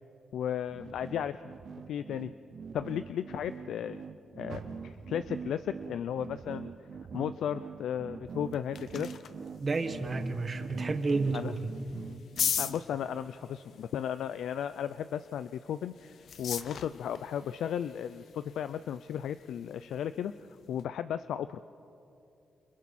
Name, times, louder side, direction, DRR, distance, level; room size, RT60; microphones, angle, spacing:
voice 1, 0.3-1.5 1.9-2.3 2.7-4.0 4.4-6.7 7.1-9.1 11.3-11.5 12.6-20.3 20.7-21.7, left 9 dB, 80° left, 12 dB, 0.4 m, -35 dB
sound 1, 0.7-13.2, right 6 dB, 45° right, 0.7 m, -44 dB
Car, 4.4-7.7 8.1-9.5 10.0-10.1 10.7-10.8, right 5 dB, 80° right, 2.0 m, -52 dB
sound 2, 8.3-20.9, left 8 dB, 60° left, 0.8 m, -41 dB
voice 2, 9.6-11.7, right 3 dB, 30° right, 6 dB, 1.6 m, -31 dB
30.0 x 29.0 x 4.2 m, 2.8 s
cardioid pair, 150°, 0 cm